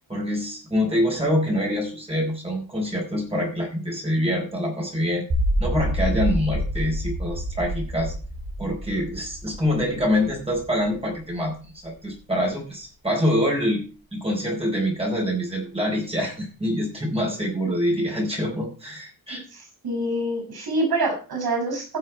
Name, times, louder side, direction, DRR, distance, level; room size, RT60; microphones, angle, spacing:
voice 1, 0.1-5.3 5.6-8.1 8.6-13.8 14.1-19.4, equal, 15° right, -1 dB, 4.6 m, -25 dB
sound 1, 5.3-11.4, equal, 60° right, 6.8 m, -28 dB
voice 2, 19.3-22.0, right 2 dB, 80° right, 3 dB, 6.7 m, -26 dB
15.5 x 6.7 x 4.6 m, 0.36 s
wide cardioid pair, 135°, 36 cm